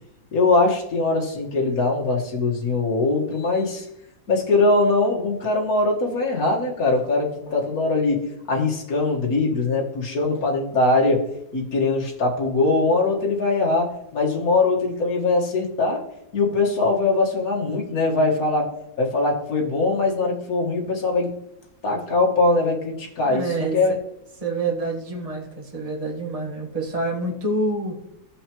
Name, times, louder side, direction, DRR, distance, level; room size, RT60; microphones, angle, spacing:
voice 1, 0.3-3.9 4.3-8.2 8.5-16.0 16.3-18.7 19.0-21.3 21.8-23.9, left 3 dB, 50° left, -2 dB, 2.0 m, -21 dB
voice 2, 23.2-24.0 24.4-28.0, right 2 dB, 20° right, 0 dB, 1.3 m, -27 dB
16.0 x 5.4 x 3.0 m, 0.82 s
omnidirectional pair, 2.0 m